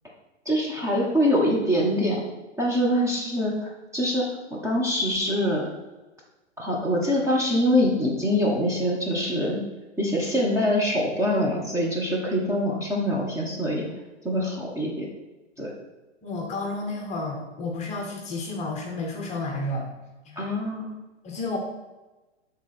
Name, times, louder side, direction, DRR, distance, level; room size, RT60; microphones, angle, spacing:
voice 1, 0.4-2.2 2.6-5.7 6.6-9.6 10.0-13.9 14.2-15.0 15.6-15.7 20.4-20.9, equal, 10° right, -4 dB, 0.9 m, -24 dB
voice 2, 16.2-19.9 20.3-20.5 21.2-21.6, left 2 dB, 20° left, 1 dB, 0.9 m, -31 dB
8.4 x 3.8 x 4.2 m, 1.1 s
hypercardioid pair, 130°, 36 cm